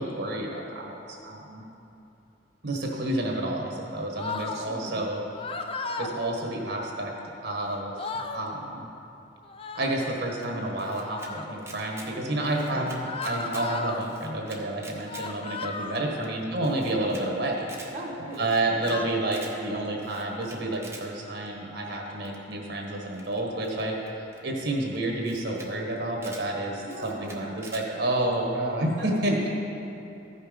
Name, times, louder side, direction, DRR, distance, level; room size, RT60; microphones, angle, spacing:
voice 1, 0.0-1.6 2.6-5.2 6.0-7.1 7.4-7.9 8.3-8.9 9.7-17.9 18.4-29.5, right 1 dB, 65° right, 0 dB, 1.4 m, -30 dB
sound 1, 4.2-4.6 5.3-6.1 7.5-7.6 7.8-8.4 9.5-10.0 10.9-11.6 13.1-14.0 15.1-16.1 17.0-17.4 18.3-19.0, left 4 dB, 30° left, 0.5 m, -35 dB
voice 2, 4.5-5.1 12.7-13.0 15.9-16.2 17.9-18.5 18.7-19.0 26.8-27.6 29.0-29.5, right 1 dB, 40° right, -4 dB, 1.1 m, -39 dB
Camera, 10.4-11.3 11.6-12.1 12.4-13.7 14.0-15.3 15.6-15.7 15.9-16.0 16.2-16.3 16.6-17.2 17.5-17.9 18.3-19.0 19.2-19.5 20.0-21.0 22.2-22.5 23.1-24.4 24.9-25.0 25.2-25.7 26.0-26.5 26.9-27.8, right 3 dB, 15° right, 0.9 m, -46 dB
14.0 x 5.6 x 5.2 m, 2.8 s
head